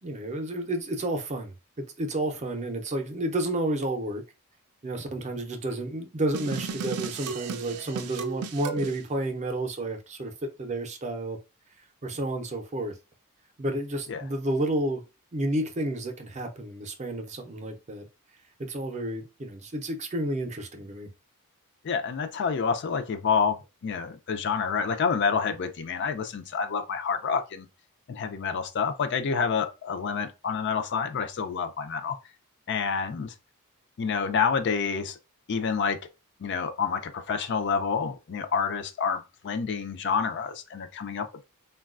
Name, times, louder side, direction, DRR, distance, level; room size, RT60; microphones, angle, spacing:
voice 1, 0.0-1.5 2.0-4.2 4.8-11.4 12.0-12.9 13.6-15.0 15.3-18.1 18.6-21.1, right 1 dB, 30° right, 0.5 m, -31 dB
sound 1, 6.3-9.0, right 6 dB, 85° right, 0.4 m, -34 dB
voice 2, 21.8-23.6 23.8-27.7 28.1-32.2 32.7-33.3 34.0-35.2 35.5-36.0 36.4-41.4, left 6 dB, 50° left, 0.4 m, -28 dB
3.9 x 2.2 x 2.4 m
head